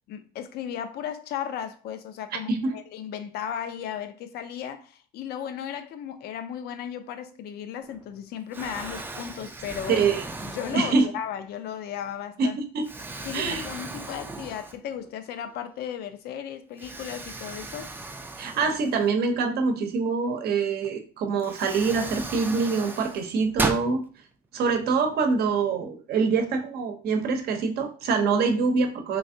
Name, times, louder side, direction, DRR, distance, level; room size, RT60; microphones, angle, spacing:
voice 1, 0.1-10.0 10.4-12.6 13.2-17.9, left 9 dB, 70° left, 0.5 m, -35 dB
voice 2, 2.5-2.8 9.9-10.2 10.7-11.1 12.4-12.9 13.3-13.7 18.4-24.0 24.5-29.2, right 4 dB, 65° right, 0.7 m, -25 dB
Explosion, 7.8-8.2 8.5-11.4 12.0-12.1 12.8-15.1 15.4-15.5 16.8-19.4 20.8-20.9 21.4-23.9, right 3 dB, 10° right, 0.4 m, -36 dB
3.3 x 3.1 x 2.7 m
cardioid pair, 110°, 17 cm